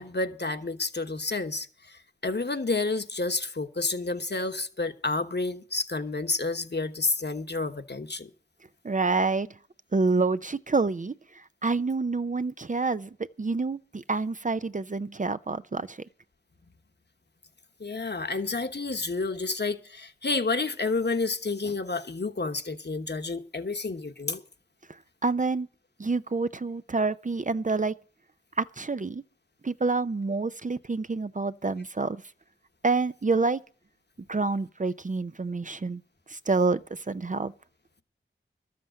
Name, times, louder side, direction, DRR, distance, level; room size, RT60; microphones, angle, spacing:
voice 1, 0.0-8.3 17.8-24.4, left 3 dB, 55° left, 1.2 m, -30 dB
voice 2, 8.8-9.5 9.9-13.1 13.4-16.1 24.9-25.7 26.0-27.9 28.6-29.2 29.6-32.2 32.8-33.6 34.3-36.0 36.3-37.5, right 3 dB, 35° right, 0.5 m, -28 dB
13.0 x 7.6 x 7.6 m
wide cardioid pair, 55°, 21 cm